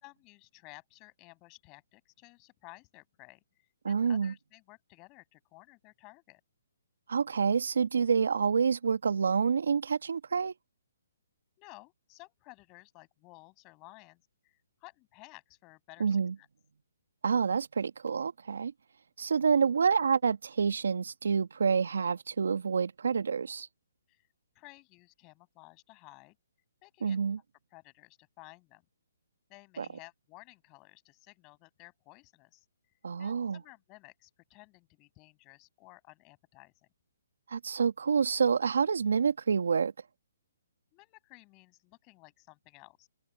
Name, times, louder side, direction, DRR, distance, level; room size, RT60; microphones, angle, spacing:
voice 1, 0.0-6.4 11.6-16.5 24.1-24.2 24.5-26.3 26.8-27.2 27.7-28.8 29.5-32.6 33.2-36.9 40.9-43.1, left 26 dB, 25° left, 6.8 m, -55 dB
voice 2, 3.8-4.3 7.1-10.5 16.0-16.3 17.2-18.7 19.2-23.7 27.0-27.4 29.8-29.9 33.0-33.6 37.5-39.9, right 6 dB, 75° right, 1.7 m, -28 dB
hypercardioid pair, 145°, 0 cm